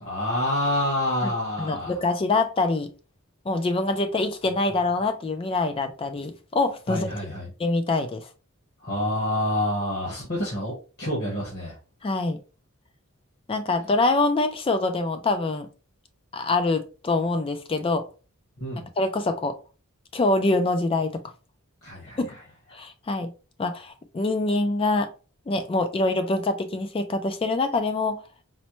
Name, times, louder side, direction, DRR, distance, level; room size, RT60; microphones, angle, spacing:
voice 1, 0.0-2.0 6.9-7.5 8.8-11.8 18.6-18.9 21.8-22.2, left 1 dB, 50° left, -5 dB, 1.1 m, -27 dB
voice 2, 1.6-2.9 3.5-7.1 7.6-8.3 12.0-12.4 13.5-15.7 16.3-18.0 19.0-19.5 20.1-21.2 22.2-22.3 22.7-23.3 23.6-25.1 25.5-28.2, left 2 dB, 25° left, 8 dB, 0.3 m, -25 dB
4.1 x 2.1 x 3.0 m, 0.34 s
head